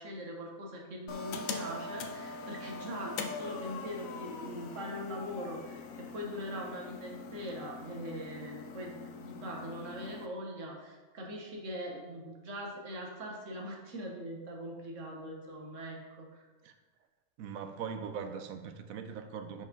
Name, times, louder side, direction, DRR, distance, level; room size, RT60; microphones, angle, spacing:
voice 1, 0.0-16.5, equal, 60° right, 0 dB, 1.5 m, -41 dB
sound 1, 1.1-10.3, left 4 dB, 70° left, 1.0 m, -43 dB
voice 2, 17.4-19.7, right 6 dB, 75° right, 8 dB, 1.0 m, -40 dB
5.3 x 5.0 x 5.2 m, 1.3 s
omnidirectional pair, 1.5 m